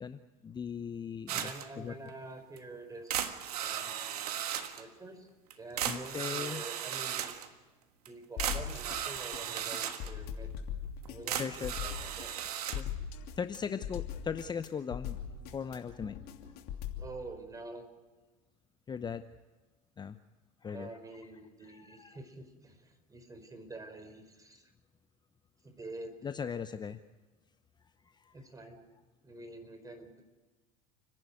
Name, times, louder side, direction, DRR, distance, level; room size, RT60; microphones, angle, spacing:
voice 1, 0.0-1.5 1.8-1.9 5.9-6.6 11.3-11.7 12.8-12.9 13.4-15.2 15.5-16.2 18.9-19.2 20.0-20.2 20.6-20.9 21.6-22.2 26.2-27.0, left 6 dB, 20° left, 11 dB, 0.8 m, -38 dB
voice 2, 1.3-4.3 4.7-5.3 5.6-7.3 8.1-10.5 11.1-12.3 17.0-17.9 20.7-24.7 25.6-26.1 28.3-28.8 29.2-30.2, right 2 dB, 15° right, 6 dB, 4.7 m, -47 dB
sound 1, 1.3-1.7 2.1-2.2 2.6-2.7 3.1-4.8 5.5-5.6 5.8-7.5 8.0-8.1 8.4-10.1 11.0-12.8, right 10 dB, 80° right, 1.5 m, -36 dB
sound 2, 8.4-17.1, left 8 dB, 55° left, 2.9 m, -40 dB
30.0 x 11.0 x 9.4 m, 1.2 s
hypercardioid pair, 90°, 20 cm